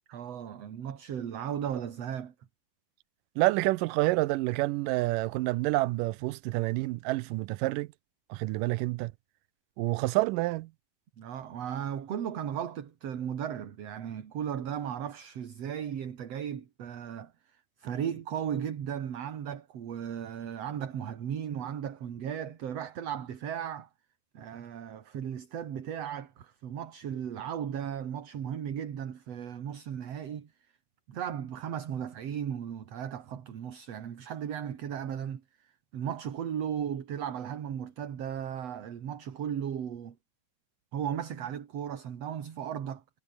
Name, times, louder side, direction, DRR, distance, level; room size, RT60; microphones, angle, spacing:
voice 1, 0.1-2.3 11.2-23.9 24.3-30.5 31.1-40.2 40.9-43.0, right 9 dB, 55° right, 2.8 m, -36 dB
voice 2, 3.4-7.9 8.3-9.1 9.8-10.7, right 20 dB, 85° right, 2.2 m, -28 dB
omnidirectional pair, 3.8 m